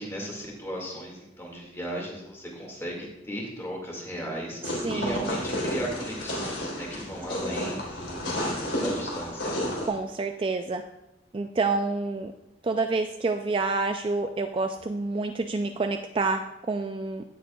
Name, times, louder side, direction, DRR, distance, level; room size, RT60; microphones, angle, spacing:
voice 1, 0.0-8.2 8.5-9.6, equal, 15° left, -1 dB, 2.0 m, -36 dB
sound 1, 4.6-9.9, left 1 dB, 85° left, 3.4 m, -31 dB
voice 2, 4.6-5.4 7.4-7.8 9.9-10.8 11.3-12.3 12.6-17.2, right 3 dB, 30° right, 6 dB, 0.3 m, -28 dB
17.0 x 6.3 x 2.3 m, 0.91 s
head